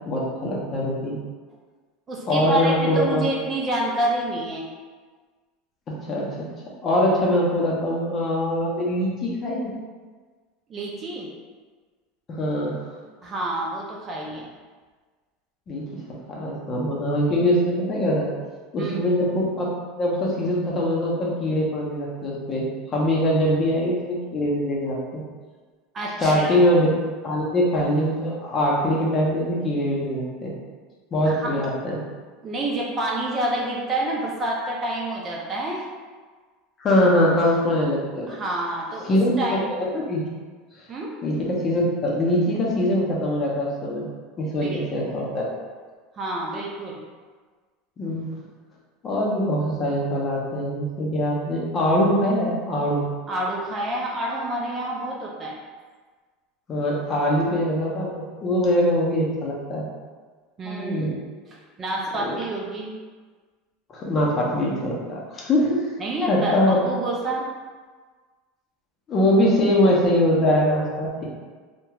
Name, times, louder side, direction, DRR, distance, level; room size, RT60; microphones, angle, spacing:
voice 1, 0.1-1.1 2.3-3.2 5.9-6.3 6.8-9.7 12.3-12.8 15.7-15.8 16.3-18.3 18.7-19.7 20.0-25.2 26.2-26.9 27.2-30.5 31.1-32.0 36.8-38.4 39.0-39.6 39.9-40.2 41.2-44.1 44.4-45.5 48.0-48.3 49.0-53.1 56.7-59.8 60.7-61.1 62.2-62.4 63.9-65.9 66.3-66.8 69.1-71.2, left 1 dB, 30° left, -4 dB, 0.6 m, -22 dB
voice 2, 2.1-4.7 10.7-11.3 13.2-14.5 18.8-19.0 25.9-26.6 31.2-31.5 32.4-35.8 38.3-39.7 40.9-41.1 44.6-45.2 46.1-47.0 53.3-55.6 60.6-61.1 61.5-62.9 66.0-67.4, right 1 dB, 25° right, -2 dB, 0.4 m, -28 dB
2.9 x 2.1 x 2.3 m, 1.4 s
supercardioid pair, 135°, 0 cm